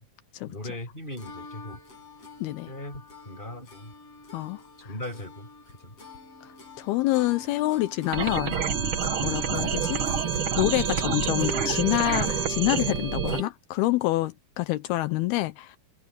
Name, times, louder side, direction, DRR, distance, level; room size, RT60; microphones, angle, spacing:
voice 1, 0.5-1.8 2.7-3.9 4.8-5.5 5.8-5.9 9.2-9.4, left 1 dB, 10° left, 6.8 m, -39 dB
sound 1, 1.2-13.5, left 2 dB, 40° left, 7.6 m, -43 dB
voice 2, 2.4-2.7 4.3-4.6 6.8-8.6 9.0-10.0 10.6-15.8, left 17 dB, 85° left, 2.7 m, -27 dB
sound 2, 8.1-13.4, right 7 dB, 50° right, 1.8 m, -27 dB
omnidirectional pair, 4.4 m